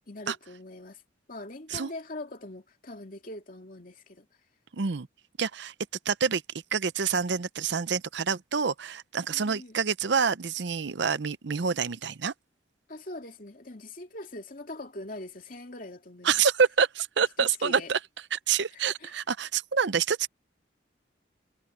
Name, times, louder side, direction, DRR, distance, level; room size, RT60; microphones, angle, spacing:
voice 1, 0.1-1.0 1.3-4.3 9.3-9.8 12.9-16.4 17.4-17.9 18.7-19.2, left 2 dB, 45° left, 2.8 m, -42 dB
voice 2, 4.7-5.1 5.4-5.7 6.1-6.4 6.7-12.3 16.2-18.0 18.3-20.3, right 6 dB, 65° right, 0.6 m, -27 dB
head